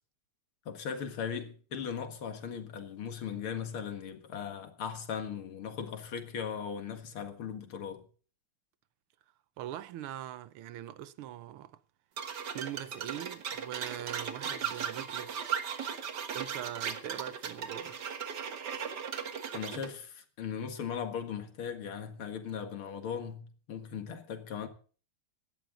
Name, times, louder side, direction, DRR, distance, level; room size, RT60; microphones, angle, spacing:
voice 1, 0.7-8.0 19.5-24.7, left 7 dB, 80° left, 2.6 m, -38 dB
voice 2, 9.6-11.8 12.5-15.4 16.3-18.0, right 12 dB, 85° right, 1.7 m, -42 dB
sound 1, 12.2-19.9, right 7 dB, 55° right, 1.9 m, -37 dB
17.0 x 12.0 x 3.8 m
omnidirectional pair, 2.3 m